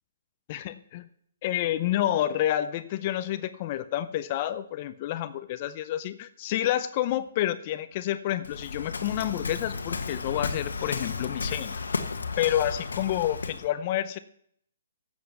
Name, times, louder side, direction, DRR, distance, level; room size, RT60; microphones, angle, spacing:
voice 1, 0.5-1.0 1.4-11.8 12.4-14.2, left 12 dB, 35° left, 14 dB, 0.6 m, -29 dB
Waves surf, 8.4-13.7, left 4 dB, 90° left, 1.2 m, -33 dB
7.9 x 7.5 x 8.2 m, 0.66 s
hypercardioid pair, 150°, 0 cm